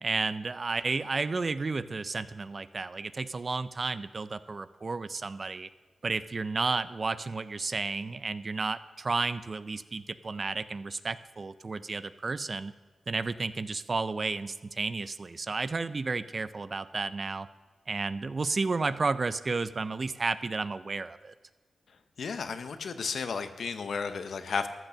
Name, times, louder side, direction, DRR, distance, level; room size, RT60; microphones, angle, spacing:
voice 1, 0.0-5.7 6.0-12.7 13.1-17.5 17.9-21.3, right 3 dB, 45° right, 14 dB, 0.4 m, -32 dB
voice 2, 22.2-24.7, left 5 dB, 75° left, 9 dB, 0.8 m, -33 dB
13.5 x 6.1 x 6.8 m, 1.4 s
cardioid pair, 65°, 0 cm